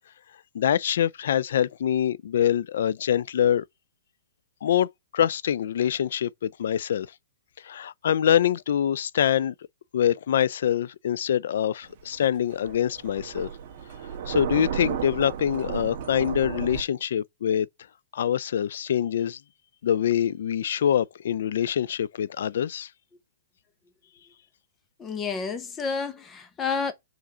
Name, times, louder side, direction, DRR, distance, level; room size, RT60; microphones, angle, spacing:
voice 1, 0.5-3.6 4.6-7.1 7.6-9.5 9.9-13.5 14.3-17.7 18.1-19.4 19.8-22.9, left 9 dB, 65° left, 0.3 m, -25 dB
Thunder, 11.8-16.8, right 8 dB, 40° right, 1.3 m, -33 dB
voice 2, 25.0-26.9, left 5 dB, 15° left, 0.9 m, -30 dB
4.9 x 3.8 x 5.4 m
hypercardioid pair, 165°, 0 cm